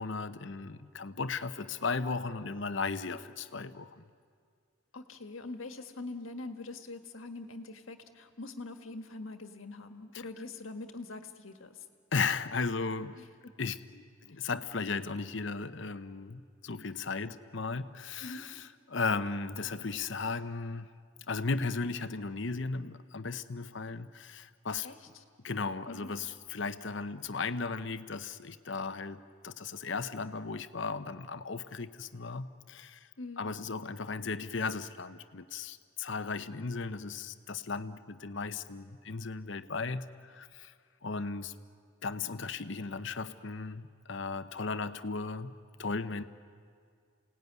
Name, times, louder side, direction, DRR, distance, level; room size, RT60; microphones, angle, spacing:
voice 1, 0.0-4.0 12.1-13.2 13.6-18.6 18.9-20.9 21.3-24.9 25.4-33.1 33.4-40.7 41.0-41.5 42.0-45.5 45.8-46.2, left 4 dB, 65° left, 12 dB, 0.9 m, -36 dB
voice 2, 4.9-11.8 13.1-13.5 18.2-18.4 24.8-25.0 25.9-26.1 33.2-33.4, left 2 dB, 80° left, 7 dB, 1.6 m, -43 dB
28.0 x 18.0 x 9.5 m, 2.2 s
head